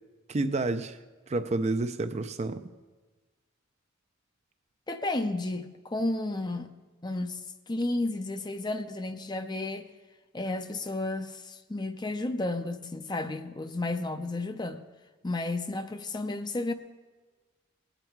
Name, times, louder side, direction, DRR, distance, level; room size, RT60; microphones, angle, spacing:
voice 1, 0.3-1.0 1.3-2.6, right 2 dB, 35° right, 10 dB, 0.5 m, -29 dB
voice 2, 4.9-6.7 7.0-9.9 10.3-14.8 15.2-16.7, left 2 dB, 20° left, 9 dB, 0.5 m, -32 dB
19.5 x 8.9 x 4.6 m, 1.3 s
head